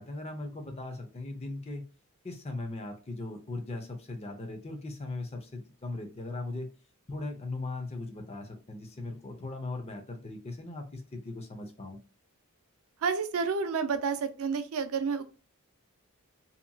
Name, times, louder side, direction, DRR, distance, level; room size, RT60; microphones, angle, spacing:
voice 1, 0.0-1.8 2.2-6.7 7.1-12.0, left 2 dB, 30° left, 4 dB, 0.5 m, -39 dB
voice 2, 13.0-15.2, right 5 dB, 70° right, 9 dB, 0.4 m, -30 dB
2.8 x 2.5 x 2.2 m, 0.34 s
head